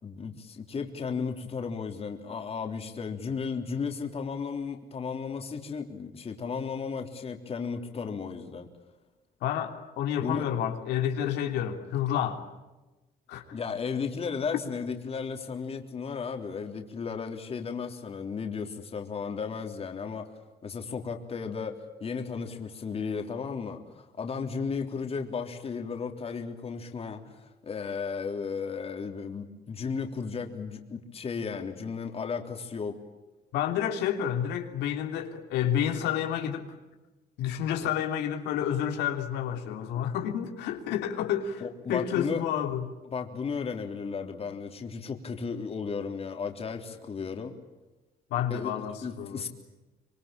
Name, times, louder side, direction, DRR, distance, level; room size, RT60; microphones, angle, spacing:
voice 1, 0.0-8.7 10.2-10.4 13.5-20.3 20.6-33.0 41.6-42.4 43.1-47.6 48.5-48.7 49.0-49.5, left 5 dB, 35° left, 4 dB, 3.5 m, -34 dB
voice 2, 9.4-12.4 13.3-13.6 33.5-36.8 37.4-42.8 48.3-49.5, left 9 dB, 85° left, 4 dB, 3.1 m, -30 dB
25.5 x 24.0 x 8.9 m, 1.1 s
cardioid pair, 110°, 17 cm